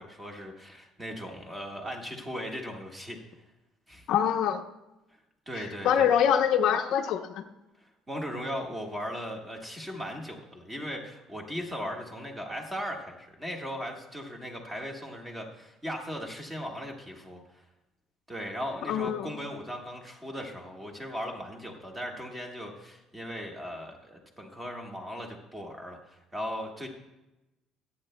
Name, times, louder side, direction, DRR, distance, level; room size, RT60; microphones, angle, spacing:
voice 1, 0.0-3.2 3.9-4.1 5.5-6.1 7.8-17.4 18.3-26.9, equal, 10° right, 1 dB, 1.5 m, -38 dB
voice 2, 4.1-4.6 5.6-7.4 18.9-19.3, left 8 dB, 60° left, 6 dB, 0.7 m, -25 dB
25.0 x 8.6 x 2.2 m, 0.98 s
cardioid pair, 160°, 0 cm